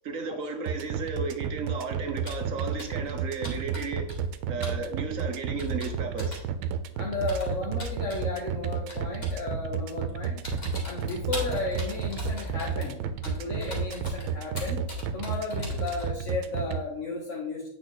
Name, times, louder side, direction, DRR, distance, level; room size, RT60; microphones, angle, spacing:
voice 1, 0.0-4.2 4.5-6.4, right 4 dB, 55° right, 5 dB, 1.0 m, -34 dB
sound 1, 0.7-16.8, right 8 dB, 85° right, 1.5 m, -31 dB
Computer keyboard, 2.3-2.5 2.8-3.1 3.4-4.4 4.6-4.8 5.6-6.5 7.3-8.3 8.9-9.4 9.9-10.1 10.4-16.1, left 3 dB, 20° left, 2.2 m, -37 dB
voice 2, 6.9-10.4 10.8-14.9 15.1-17.7, left 3 dB, 45° left, -1 dB, 1.1 m, -34 dB
8.4 x 5.0 x 4.0 m, 0.75 s
omnidirectional pair, 2.2 m